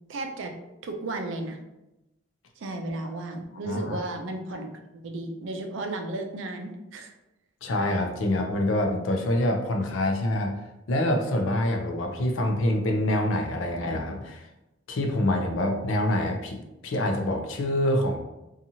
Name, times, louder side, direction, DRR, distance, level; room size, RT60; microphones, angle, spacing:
voice 1, 0.1-0.5 0.8-1.6 2.6-4.7 5.0-7.1, right 2 dB, 70° right, 4 dB, 0.4 m, -34 dB
voice 2, 3.7-4.0 7.6-10.6 10.9-14.4 14.9-18.2, left 1 dB, 80° left, 3 dB, 0.5 m, -26 dB
2.8 x 2.4 x 2.7 m, 0.96 s
head